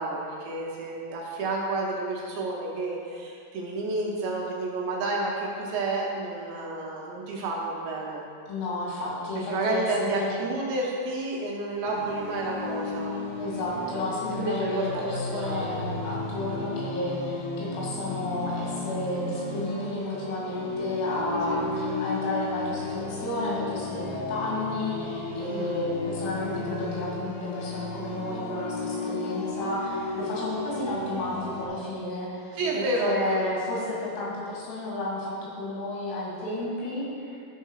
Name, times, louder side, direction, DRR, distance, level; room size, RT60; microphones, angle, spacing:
voice 1, 0.0-8.3 9.4-13.2 14.3-15.8 21.3-21.9 25.4-25.8 32.5-33.6, right 2 dB, 75° right, -2 dB, 2.9 m, -30 dB
voice 2, 8.5-10.4 13.4-37.4, left 1 dB, 90° left, -6 dB, 5.1 m, -32 dB
sound 1, 11.8-31.7, left 3 dB, 70° left, 2.6 m, -34 dB
12.5 x 4.4 x 5.6 m, 2.4 s
omnidirectional pair, 5.7 m